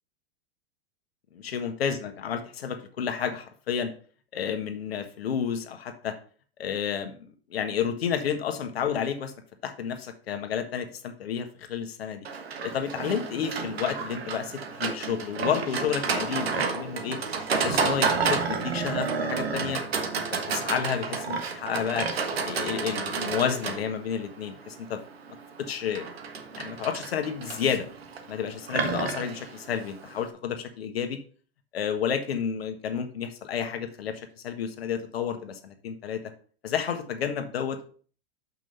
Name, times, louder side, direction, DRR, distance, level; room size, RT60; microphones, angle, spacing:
voice 1, 1.3-2.0 2.2-3.9 4.3-6.1 6.6-9.3 9.6-12.2 12.6-17.2 17.6-19.8 20.1-22.1 22.4-25.0 25.6-26.1 26.6-27.9 28.3-31.2 31.7-36.2 36.6-37.9, left 7 dB, 80° left, 6 dB, 1.5 m, -31 dB
Livestock farm animals working animals, 12.2-30.3, right 5 dB, 90° right, 1.4 m, -31 dB
6.2 x 5.5 x 5.5 m, 0.43 s
hypercardioid pair, 115°, 30 cm